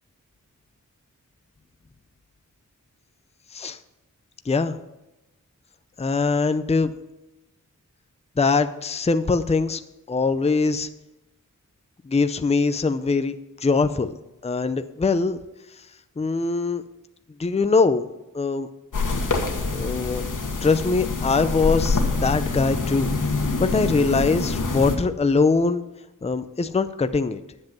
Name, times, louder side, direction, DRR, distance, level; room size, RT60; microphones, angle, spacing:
voice 1, 4.5-4.8 6.0-6.9 8.4-9.8 10.1-10.9 12.1-13.3 13.6-14.1 14.4-15.4 16.2-16.8 17.4-18.1 18.3-18.7 19.7-20.2 20.6-23.1 23.6-25.8 26.2-27.4, left 4 dB, 20° left, 11 dB, 0.5 m, -22 dB
sound 1, 18.9-25.0, left 3 dB, 75° left, 1.5 m, -25 dB
10.5 x 7.6 x 5.9 m, 0.96 s
wide cardioid pair, 95°, 32 cm